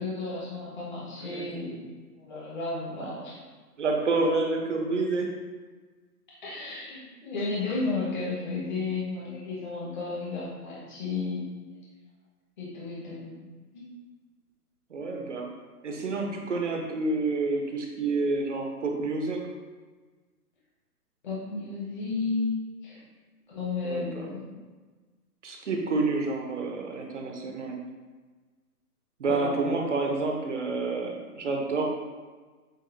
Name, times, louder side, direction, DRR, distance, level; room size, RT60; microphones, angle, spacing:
voice 1, 0.0-1.8 2.2-3.4 6.4-11.5 12.6-13.5 13.7-13.9 21.2-22.6 22.8-23.0 23.5-24.4 29.3-29.7, left 3 dB, 30° left, -7 dB, 1.2 m, -33 dB
voice 2, 3.8-5.3 14.9-15.5 15.8-19.4 23.8-24.3 25.4-27.8 29.2-31.9, right 3 dB, 50° right, 2 dB, 0.7 m, -29 dB
7.6 x 2.6 x 2.6 m, 1.4 s
hypercardioid pair, 175°, 47 cm